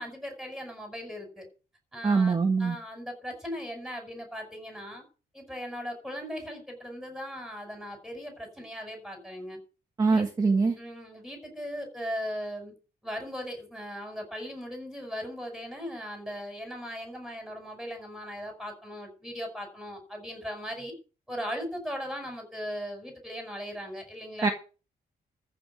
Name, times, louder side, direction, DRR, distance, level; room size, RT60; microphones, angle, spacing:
voice 1, 0.0-1.4 1.9-5.0 5.3-9.6 10.0-10.3 10.8-12.7 13.0-20.9 21.3-24.5, equal, ahead, 4 dB, 5.7 m, -38 dB
voice 2, 2.0-2.8 10.0-10.8 24.4-24.5, right 4 dB, 20° right, 3 dB, 1.6 m, -23 dB
14.0 x 5.6 x 7.9 m, 0.35 s
cardioid pair, 150°, 17 cm